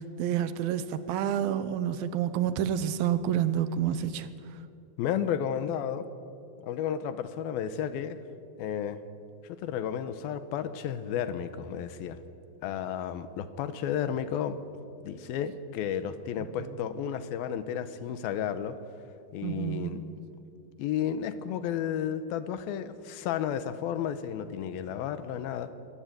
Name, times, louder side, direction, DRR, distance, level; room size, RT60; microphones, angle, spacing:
voice 1, 0.0-4.3 19.4-20.0, right 10 dB, 80° right, 13 dB, 2.8 m, -29 dB
voice 2, 5.0-6.1 6.6-8.2 8.6-9.0 9.4-12.2 12.6-14.6 15.0-18.8 19.3-20.0 20.8-25.7, left 9 dB, 90° left, 12 dB, 2.9 m, -32 dB
23.5 x 17.5 x 9.1 m, 2.6 s
omnidirectional pair, 4.2 m